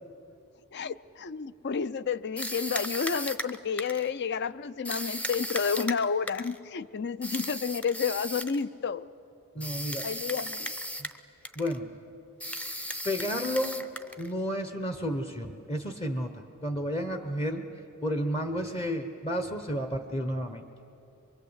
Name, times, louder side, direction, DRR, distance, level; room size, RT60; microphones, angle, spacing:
voice 1, 0.7-9.0 10.0-10.7, left 6 dB, 50° left, 16 dB, 0.5 m, -30 dB
sound 1, 2.4-4.1 4.8-6.6 7.2-8.6 9.6-11.2 11.4-11.8 12.4-14.3, equal, 5° left, 0.6 m, -36 dB
voice 2, 9.5-10.1 11.0-11.1 11.6-11.9 13.0-13.8 14.2-16.3 16.6-17.7 18.0-20.6, equal, 25° left, 7 dB, 0.9 m, -31 dB
23.5 x 23.5 x 8.1 m, 2.7 s
head